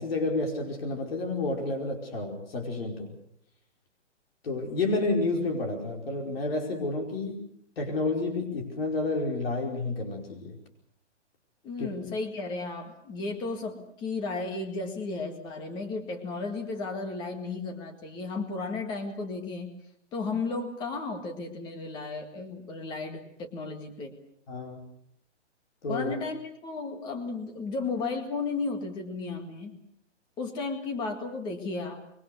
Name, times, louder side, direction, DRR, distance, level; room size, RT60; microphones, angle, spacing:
voice 1, 0.0-3.1 4.4-7.4 7.8-10.6 11.8-11.9 24.5-24.8 25.8-26.1, left 2 dB, 55° left, 3 dB, 5.1 m, -30 dB
voice 2, 11.6-19.7 20.1-24.1 25.9-29.8 30.4-32.0, left 3 dB, 10° left, 5 dB, 1.9 m, -34 dB
25.0 x 23.0 x 6.9 m, 0.70 s
hypercardioid pair, 170°, 36 cm